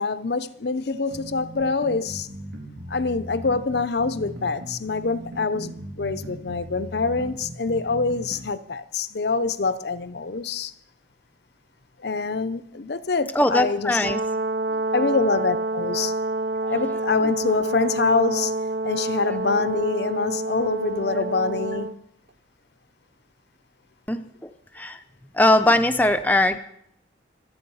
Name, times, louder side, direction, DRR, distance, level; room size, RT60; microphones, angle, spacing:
voice 1, 0.0-2.3 2.9-10.7 12.0-14.0 14.9-16.2 16.7-18.5 18.8-22.0, left 4 dB, 55° left, 0.7 m, -25 dB
sound 1, 1.1-8.5, right 1 dB, 85° right, 3.4 m, -38 dB
voice 2, 13.3-14.2 16.6-16.7 19.3-19.4 24.1-25.0 25.3-26.6, left 1 dB, 10° left, 0.6 m, -21 dB
Brass instrument, 14.0-22.0, right 2 dB, 60° right, 0.8 m, -28 dB
25.5 x 8.6 x 5.5 m
head